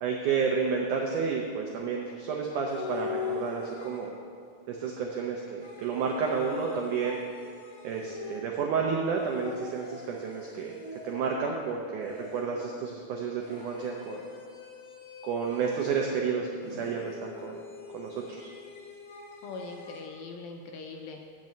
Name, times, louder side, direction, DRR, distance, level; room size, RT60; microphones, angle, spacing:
voice 1, 0.0-4.1 4.7-7.2 7.8-10.7 11.0-14.2 15.2-17.6 17.9-18.5, right 5 dB, 90° right, 0 dB, 1.7 m, -31 dB
sound 1, 2.7-4.4 5.6-8.7 9.1-11.5 12.0-12.7 13.4-16.2 16.6-20.1, left 5 dB, 40° left, 3.3 m, -42 dB
voice 2, 19.4-21.3, left 3 dB, 80° left, 2 dB, 2.2 m, -41 dB
9.3 x 5.4 x 7.5 m, 2.1 s
omnidirectional pair, 4.6 m